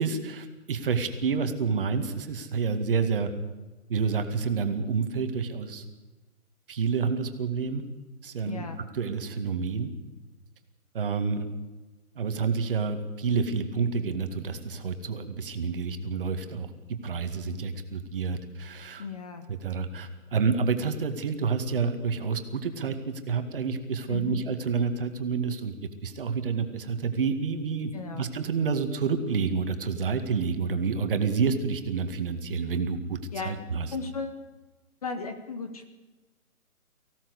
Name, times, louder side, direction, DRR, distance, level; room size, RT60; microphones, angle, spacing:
voice 1, 0.0-3.3 3.9-5.8 6.7-7.8 8.2-8.7 8.9-9.9 10.9-11.5 12.2-19.1 19.5-25.8 26.0-33.9, right 5 dB, 35° right, 7 dB, 2.1 m, -29 dB
voice 2, 8.4-8.8 19.0-19.5 24.1-24.4 27.9-28.3 33.3-33.6 33.9-34.4 35.0-35.8, left 4 dB, 25° left, 8 dB, 1.2 m, -35 dB
24.5 x 16.5 x 8.2 m, 1.2 s
hypercardioid pair, 165°, 44 cm